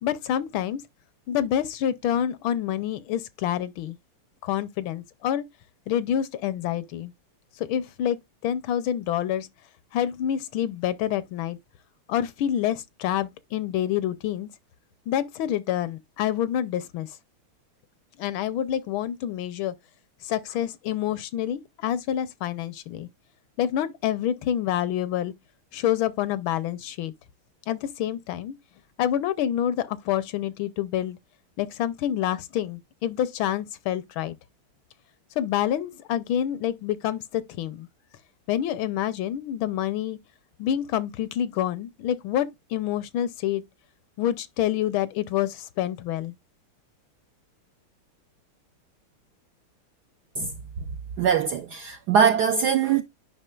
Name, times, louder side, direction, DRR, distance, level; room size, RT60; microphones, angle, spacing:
voice 1, 0.0-0.8 1.3-4.0 4.4-5.4 5.9-7.1 7.6-8.2 8.4-9.5 9.9-11.6 12.1-14.5 15.1-17.2 18.2-19.7 20.2-23.1 23.6-25.3 25.7-27.1 27.7-28.5 29.0-31.2 31.6-34.4 35.4-37.9 38.5-40.2 40.6-43.6 44.2-46.3, left 10 dB, 75° left, 1.3 m, -27 dB
voice 2, 51.2-53.0, right 7 dB, 75° right, 0.9 m, -22 dB
9.8 x 5.6 x 2.3 m
omnidirectional pair, 2.4 m